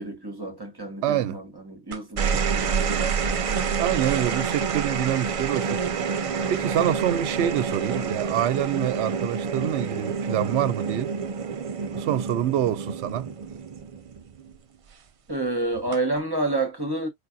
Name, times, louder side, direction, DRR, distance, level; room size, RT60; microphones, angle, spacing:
voice 1, 0.0-3.7 15.3-17.1, right 2 dB, 20° right, 1.0 m, -30 dB
voice 2, 1.0-1.4 3.8-11.1 11.9-13.3, right 11 dB, 75° right, 0.8 m, -26 dB
sound 1, 1.9-14.5 15.7-16.2, right 6 dB, 55° right, 0.3 m, -28 dB
5.0 x 2.3 x 2.5 m
omnidirectional pair, 1.2 m